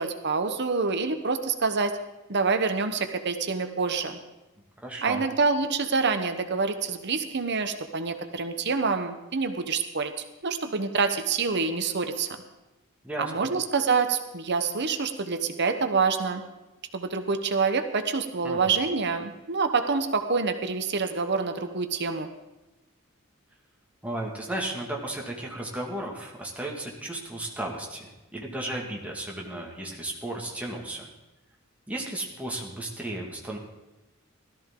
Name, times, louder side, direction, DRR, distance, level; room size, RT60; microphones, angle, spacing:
voice 1, 0.0-1.9 2.3-4.2 5.0-10.1 10.4-12.3 13.2-16.4 16.9-22.3, right 4 dB, 55° right, 8 dB, 1.0 m, -26 dB
voice 2, 4.8-5.2 13.0-13.5 18.4-18.8 24.0-31.1 31.9-33.6, right 1 dB, 5° right, -1 dB, 1.9 m, -34 dB
16.5 x 13.5 x 3.8 m, 1.0 s
head